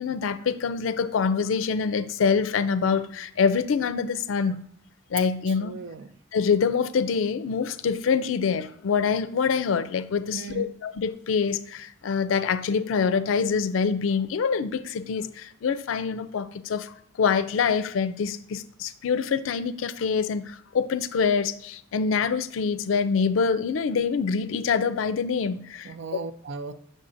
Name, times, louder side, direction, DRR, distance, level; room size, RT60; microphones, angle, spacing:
voice 1, 0.0-4.7 5.1-5.8 6.3-25.9, left 6 dB, 90° left, 0.4 m, -25 dB
voice 2, 5.6-6.1 10.3-10.7 25.8-26.7, right 4 dB, 65° right, 0.5 m, -36 dB
7.6 x 6.3 x 2.6 m
head